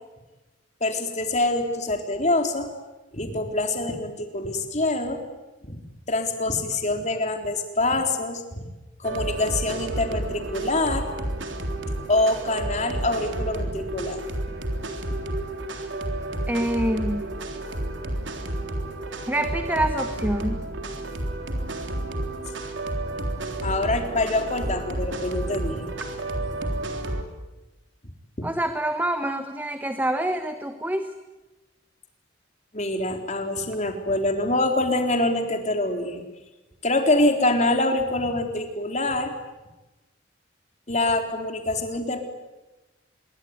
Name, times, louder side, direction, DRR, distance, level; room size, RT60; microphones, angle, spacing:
voice 1, 0.8-2.7 3.1-5.2 5.6-5.8 6.1-8.6 9.0-11.1 12.1-14.2 23.6-25.9 32.7-36.2 36.8-39.3 40.9-42.2, left 2 dB, 40° left, 4 dB, 3.8 m, -25 dB
sound 1, 9.0-27.2, right 1 dB, 85° right, 3.6 m, -31 dB
voice 2, 16.5-17.3 19.3-20.6 28.4-31.1, right 1 dB, 10° right, 8 dB, 1.2 m, -26 dB
26.5 x 22.5 x 9.7 m, 1.1 s
head